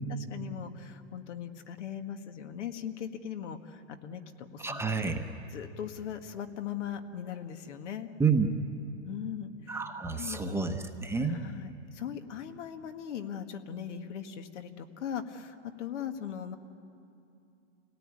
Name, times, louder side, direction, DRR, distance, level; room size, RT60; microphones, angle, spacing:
voice 1, 0.1-5.1 5.5-8.1 9.0-9.8 10.2-10.4 11.2-16.6, left 9 dB, 70° left, 7 dB, 1.9 m, -39 dB
voice 2, 4.6-5.2 8.2-8.5 9.7-11.4, right 5 dB, 5° right, 4 dB, 1.0 m, -29 dB
28.5 x 18.0 x 9.8 m, 2.7 s
hypercardioid pair, 140°, 37 cm